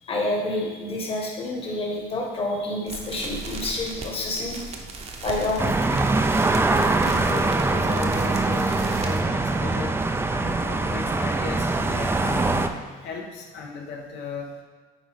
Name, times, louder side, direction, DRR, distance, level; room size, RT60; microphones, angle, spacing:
voice 1, 0.0-4.6 5.2-6.5, left 2 dB, 35° left, -1 dB, 1.4 m, -29 dB
sound 1, 2.9-9.2, right 3 dB, 40° right, 0.8 m, -37 dB
sound 2, 5.6-12.7, right 3 dB, 15° right, 0.4 m, -23 dB
voice 2, 7.0-14.6, left 4 dB, 80° left, 1 dB, 1.1 m, -36 dB
9.0 x 3.9 x 3.5 m, 1.4 s
cardioid pair, 110°, 17 cm